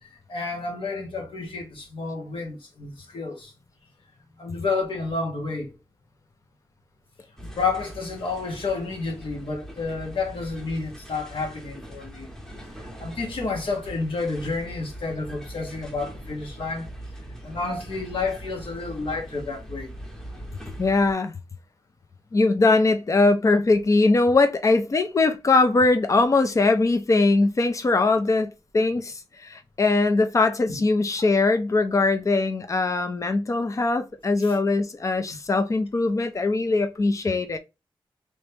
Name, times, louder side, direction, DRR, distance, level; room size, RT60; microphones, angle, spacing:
voice 1, 0.0-3.5 4.4-5.7 7.6-12.3 12.7-16.9 17.4-19.9 34.4-34.5, left 4 dB, 75° left, 1.4 m, -30 dB
sound 1, 7.4-21.1, equal, 5° left, 0.9 m, -41 dB
voice 2, 20.8-21.3 22.3-37.6, left 3 dB, 35° left, 0.5 m, -21 dB
3.1 x 2.9 x 3.3 m
wide cardioid pair, 170°, 9 cm